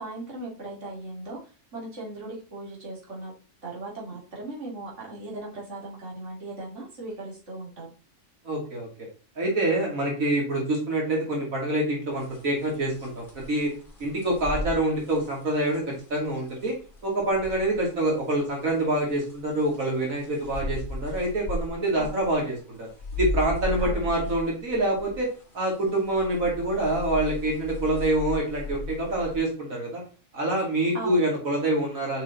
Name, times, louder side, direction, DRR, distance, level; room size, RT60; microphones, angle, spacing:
voice 1, 0.0-1.4 1.7-3.3 3.6-7.9 22.0-22.2 23.8-24.3 30.9-31.3, right 2 dB, 60° right, -5 dB, 2.9 m, -38 dB
voice 2, 8.4-8.9 9.4-13.7 14.0-16.7 17.0-25.3 25.5-30.0 30.3-32.2, right 1 dB, 90° right, -1 dB, 2.9 m, -26 dB
sound 1, 12.1-18.1 19.0-22.5 22.8-29.4, left 1 dB, 40° left, 2.3 m, -36 dB
7.1 x 5.8 x 4.1 m, 0.37 s
omnidirectional pair, 1.4 m